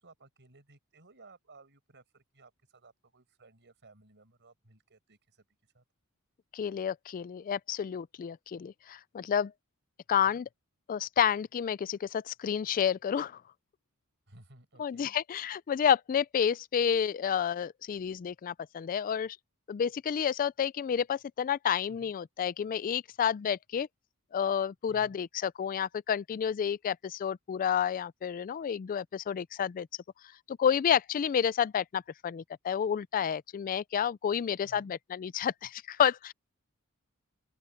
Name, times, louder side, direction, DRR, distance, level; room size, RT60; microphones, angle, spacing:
voice 1, 0.0-5.4 5.7-5.8 10.1-10.4 14.3-15.2 21.9-22.1 24.9-25.2 34.6-34.9, right 2 dB, 55° right, 5.1 m, -58 dB
voice 2, 6.5-9.5 10.1-10.5 10.9-13.4 14.8-19.4 19.7-23.9 24.3-29.9 30.5-36.3, left 8 dB, 40° left, 0.3 m, -30 dB
open air
head